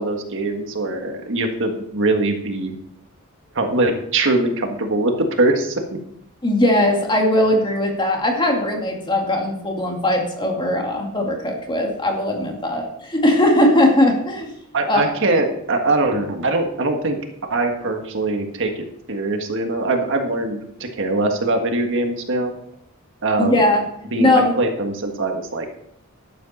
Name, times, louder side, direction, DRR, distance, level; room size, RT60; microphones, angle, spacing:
voice 1, 0.0-2.8 3.5-5.1 5.4-6.0 14.7-17.2 17.5-22.5 23.2-23.6 24.1-25.7, right 2 dB, 60° right, 4 dB, 1.6 m, -22 dB
voice 2, 6.4-14.5 14.9-15.1 23.4-23.8 24.2-24.5, left 1 dB, 20° left, 1 dB, 2.2 m, -19 dB
12.0 x 8.3 x 4.3 m, 0.72 s
head